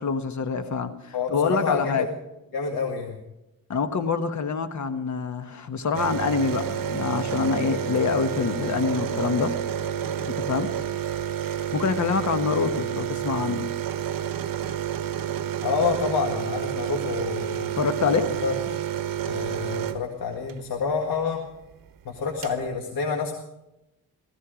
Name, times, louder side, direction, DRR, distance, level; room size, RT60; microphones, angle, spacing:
voice 1, 0.0-2.1 3.7-9.5 10.3-10.7 11.7-13.7 17.7-18.2 18.7-18.8, left 5 dB, 55° left, 9 dB, 1.3 m, -26 dB
voice 2, 1.1-2.1 2.5-3.2 15.6-17.7 18.2-18.5 19.3-21.4 22.1-23.3, left 5 dB, 85° left, 1 dB, 1.9 m, -28 dB
sound 1, 5.9-20.6 21.9-22.0 22.1-22.6, right 9 dB, 75° right, 1.0 m, -29 dB
17.0 x 15.0 x 5.0 m, 0.92 s
wide cardioid pair, 130°, 34 cm